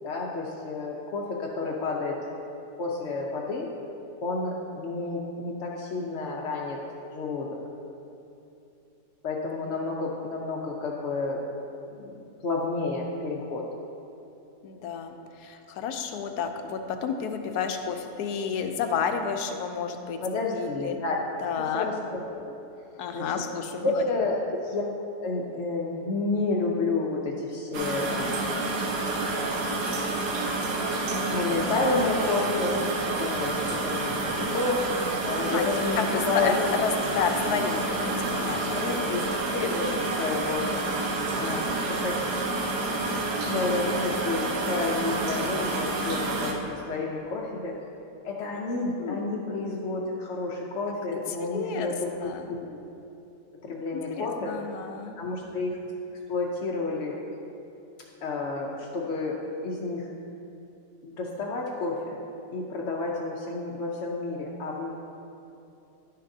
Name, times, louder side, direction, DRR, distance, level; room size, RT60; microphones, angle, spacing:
voice 1, 0.0-2.2 2.8-3.7 4.2-6.8 7.1-7.6 9.2-11.4 11.9-13.7 20.2-21.2 21.5-22.6 23.1-23.3 23.8-24.8 25.2-28.5 29.3-30.1 30.9-32.8 33.2-34.8 35.2-36.5 38.7-39.2 39.5-40.8 41.3-42.2 43.5-47.7 48.2-52.6 53.6-54.5 55.2-55.8 56.3-57.2 58.2-59.4 59.6-60.1 61.0-62.2 62.5-64.9, left 3 dB, 60° left, -2 dB, 0.8 m, -30 dB
voice 2, 14.6-20.2 20.5-21.0 21.4-21.9 23.0-24.0 35.5-35.6 35.9-39.0 49.0-49.2 51.1-52.5 53.9-55.2, left 6 dB, 75° left, 6 dB, 1.1 m, -31 dB
sound 1, 27.7-46.5, right 2 dB, 80° right, 1.4 m, -29 dB
11.0 x 6.6 x 2.7 m, 2.8 s
omnidirectional pair, 1.7 m